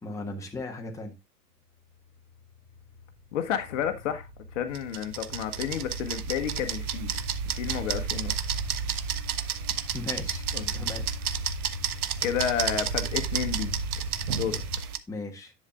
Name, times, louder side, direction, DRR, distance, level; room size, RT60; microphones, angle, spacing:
voice 1, 0.0-1.1 9.9-10.4 10.7-11.1 15.1-15.5, left 3 dB, 5° left, 1.3 m, -37 dB
sound 1, 2.0-14.8, right 2 dB, 35° right, 3.0 m, -37 dB
voice 2, 3.3-7.1 7.4-8.3 10.5-10.9 12.2-13.7 14.3-14.6, left 8 dB, 50° left, 1.1 m, -31 dB
sound 2, 4.7-15.0, right 9 dB, 65° right, 0.9 m, -32 dB
10.5 x 7.4 x 2.3 m
figure-of-eight pair, 95°, 48 cm